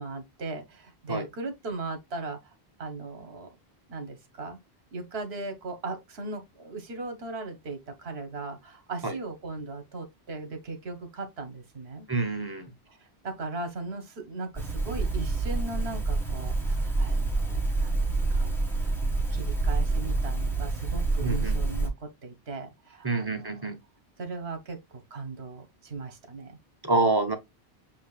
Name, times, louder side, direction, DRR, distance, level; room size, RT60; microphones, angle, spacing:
voice 1, 0.0-2.5 2.8-3.5 3.9-4.6 4.9-12.1 12.9-19.0 19.3-23.7 24.2-26.6, right 3 dB, 70° right, 1.3 m, -38 dB
voice 2, 12.1-12.7 21.2-21.6 23.0-23.8 26.8-27.4, right 2 dB, 25° right, 0.8 m, -27 dB
sound 1, 14.5-21.9, right 3 dB, ahead, 1.6 m, -27 dB
7.5 x 2.7 x 2.3 m
omnidirectional pair, 1.1 m